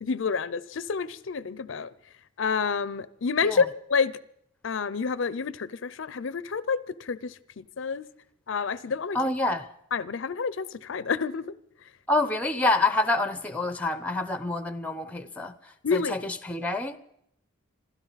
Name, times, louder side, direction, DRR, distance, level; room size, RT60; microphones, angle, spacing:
voice 1, 0.0-1.9 2.4-4.2 4.6-8.1 8.5-9.2 9.9-11.5 15.8-16.2, left 5 dB, 65° left, 17 dB, 0.5 m, -28 dB
voice 2, 9.1-9.7 12.1-17.0, left 2 dB, 5° left, 11 dB, 0.7 m, -27 dB
26.5 x 13.0 x 4.0 m, 0.75 s
head